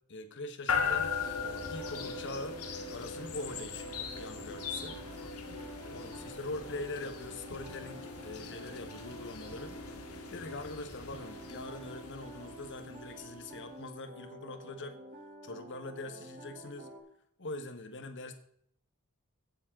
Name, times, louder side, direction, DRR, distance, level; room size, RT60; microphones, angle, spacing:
voice 1, 0.1-1.1 1.7-2.6 2.9-5.0 5.9-10.0 10.3-15.0 15.4-16.9 17.4-18.3, left 2 dB, 55° left, 8 dB, 1.3 m, -43 dB
sound 1, 0.7-13.7, left 5 dB, 80° left, 1.8 m, -39 dB
sound 2, 1.0-10.7 11.1-17.0, right 1 dB, 40° right, 3.3 m, -50 dB
16.5 x 7.4 x 3.8 m, 0.68 s
head